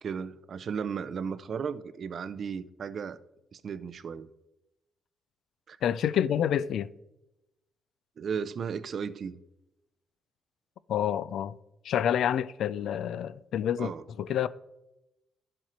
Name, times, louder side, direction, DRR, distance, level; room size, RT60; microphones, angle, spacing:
voice 1, 0.0-3.2 3.5-4.3 5.7-5.8 8.2-9.4 13.8-14.0, right 6 dB, 50° right, 0.5 m, -35 dB
voice 2, 5.8-6.9 10.9-11.6 11.8-13.9 14.2-14.5, left 9 dB, 75° left, 0.4 m, -28 dB
12.0 x 7.6 x 4.3 m
cardioid pair, 115°, 0 cm